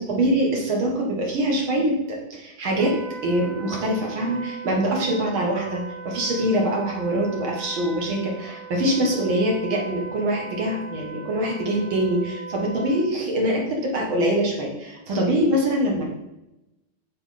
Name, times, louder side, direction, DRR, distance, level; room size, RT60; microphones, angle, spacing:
voice 1, 0.0-2.9 3.2-16.0, right 1 dB, 50° right, -1 dB, 1.6 m, -24 dB
Wind instrument woodwind instrument, 2.7-13.1, right 4 dB, 85° right, 3.0 m, -39 dB
9.2 x 4.2 x 4.2 m, 0.91 s
omnidirectional pair, 4.1 m